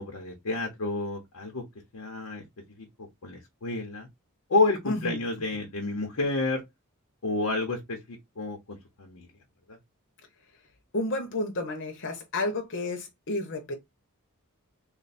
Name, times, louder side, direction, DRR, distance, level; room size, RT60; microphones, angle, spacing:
voice 1, 0.0-1.6 1.9-2.4 2.8-4.1 4.5-6.6 7.2-9.3 9.7-9.8, left 3 dB, 80° left, 0.9 m, -30 dB
voice 2, 4.8-5.2 10.9-13.7, left 2 dB, 55° left, 0.9 m, -31 dB
3.3 x 2.2 x 4.1 m
head